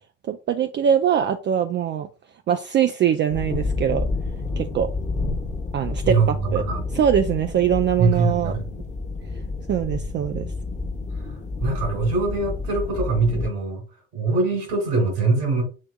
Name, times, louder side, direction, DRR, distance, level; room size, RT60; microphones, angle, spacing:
voice 1, 0.3-2.1 2.5-4.1 4.6-4.9 5.7-6.6 6.9-8.6 9.7-10.5, right 9 dB, 30° right, 7 dB, 0.4 m, -22 dB
sound 1, 3.3-13.5, left 3 dB, 20° left, 1.0 m, -29 dB
voice 2, 6.0-6.8 8.0-8.7 11.2-11.3 11.6-13.8 14.1-15.6, right 3 dB, 80° right, 2 dB, 2.3 m, -22 dB
6.4 x 3.4 x 2.2 m, 0.33 s
hypercardioid pair, 60°, 36 cm